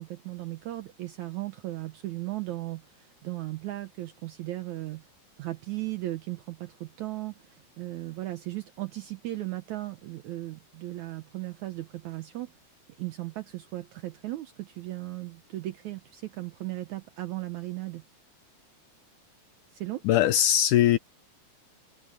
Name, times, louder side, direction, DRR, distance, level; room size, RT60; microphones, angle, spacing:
voice 1, 0.0-5.0 5.4-12.5 13.0-18.0 19.7-20.0, right 17 dB, 75° right, 1.8 m, -36 dB
voice 2, 20.0-21.0, left 11 dB, 75° left, 2.0 m, -21 dB
omnidirectional pair, 4.3 m